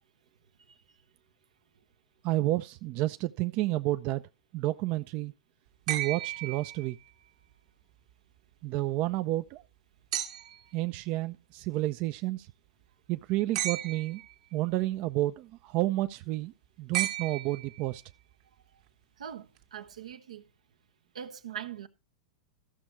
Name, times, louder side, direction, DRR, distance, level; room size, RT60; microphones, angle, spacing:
voice 1, 2.2-4.2 4.5-5.3 5.9-7.0 8.6-9.6 10.7-12.5 13.1-14.2 14.5-18.0, right 17 dB, 45° right, 0.5 m, -30 dB
sound 1, 5.9-7.3 10.1-10.7 13.5-14.3 16.9-18.0 19.6-19.7, right 14 dB, 65° right, 1.7 m, -34 dB
voice 2, 19.2-20.5 21.1-21.9, right 9 dB, 80° right, 1.0 m, -42 dB
14.0 x 6.2 x 4.4 m
hypercardioid pair, 105°, 4 cm